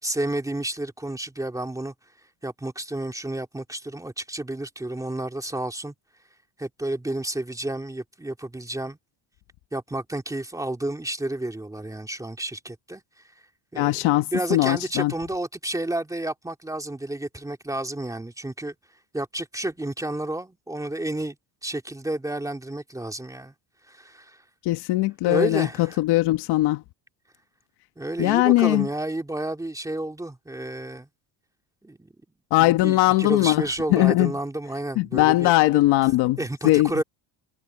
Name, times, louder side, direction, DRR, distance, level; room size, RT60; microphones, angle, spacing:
voice 1, 0.0-1.9 2.4-5.9 6.6-9.0 9.7-13.0 13.7-18.7 19.1-21.4 21.6-23.5 23.9-24.4 25.3-26.0 28.0-31.1 31.8-32.1 32.6-35.5 36.4-37.0, right 1 dB, 10° right, 2.8 m, -31 dB
voice 2, 13.7-15.1 24.6-26.8 28.2-28.9 32.5-34.3 35.0-36.4 36.6-37.0, left 18 dB, 70° left, 1.5 m, -20 dB
cardioid pair, 115°, 41 cm